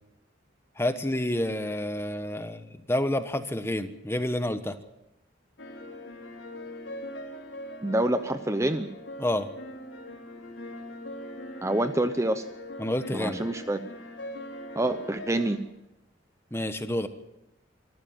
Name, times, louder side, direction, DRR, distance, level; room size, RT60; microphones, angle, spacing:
voice 1, 0.8-4.8 9.2-9.5 12.8-13.4 16.5-17.1, left 1 dB, 15° left, 10 dB, 1.1 m, -29 dB
sound 1, 5.6-15.6, left 1 dB, 75° left, 3.3 m, -41 dB
voice 2, 7.8-8.9 11.6-12.4 13.1-13.8 14.8-15.6, right 1 dB, 15° right, 9 dB, 0.8 m, -26 dB
25.0 x 14.5 x 7.3 m, 0.90 s
head